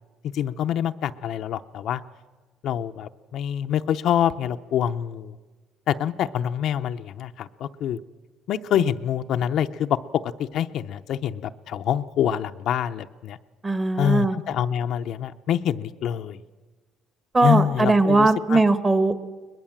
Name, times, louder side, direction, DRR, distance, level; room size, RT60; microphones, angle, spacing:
voice 1, 0.3-2.0 2.6-5.4 5.9-8.0 8.5-10.0 10.2-13.4 14.0-16.4 17.4-18.6, left 9 dB, 65° left, 8 dB, 0.6 m, -26 dB
voice 2, 13.6-14.4 17.3-19.2, right 3 dB, 20° right, 12 dB, 1.3 m, -20 dB
21.5 x 20.5 x 7.4 m, 1.3 s
cardioid pair, 105°, 0 cm